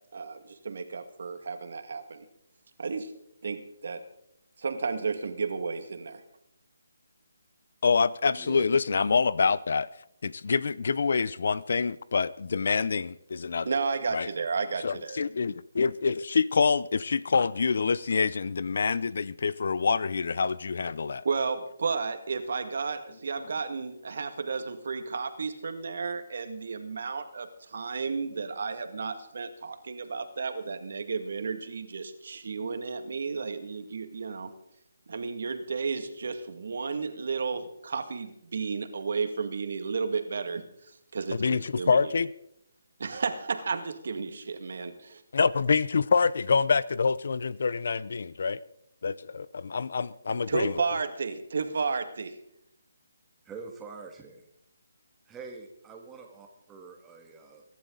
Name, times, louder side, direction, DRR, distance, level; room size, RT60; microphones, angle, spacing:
voice 1, 0.1-2.3 2.8-3.1 3.4-4.0 4.6-6.2 13.6-15.2 21.2-34.5 35.1-40.6 41.1-42.1 43.0-44.9 50.5-52.3, right 5 dB, 60° right, 2.0 m, -32 dB
voice 2, 7.8-9.9 10.2-13.7 14.1-14.3 14.8-21.2 41.3-42.3 45.3-48.6 49.0-49.5 49.7-50.8, left 5 dB, 60° left, 0.6 m, -26 dB
voice 3, 53.5-54.4 55.3-57.6, right 4 dB, 10° right, 2.0 m, -45 dB
23.5 x 11.5 x 3.9 m
hypercardioid pair, 165°, 0 cm